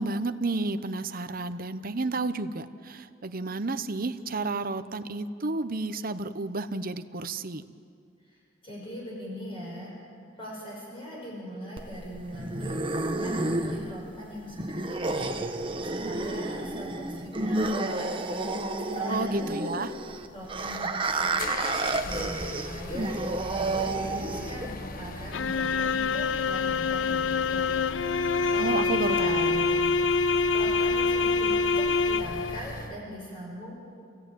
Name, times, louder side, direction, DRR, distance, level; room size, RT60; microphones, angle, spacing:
voice 1, 0.0-7.6 19.1-19.9 28.6-29.9, right 3 dB, 50° right, 11 dB, 0.9 m, -31 dB
voice 2, 8.6-9.9 10.4-18.1 18.9-19.8 20.3-27.7 28.0-28.2 28.5-29.6 30.5-33.8, equal, 30° left, -4 dB, 5.8 m, -41 dB
sound 1, 11.8-24.8, right 2 dB, 25° right, 1.2 m, -30 dB
sound 2, 20.5-33.0, left 1 dB, 45° left, 1.4 m, -40 dB
sound 3, 25.3-32.6, left 4 dB, 70° left, 0.5 m, -25 dB
28.5 x 16.5 x 9.2 m, 2.4 s
head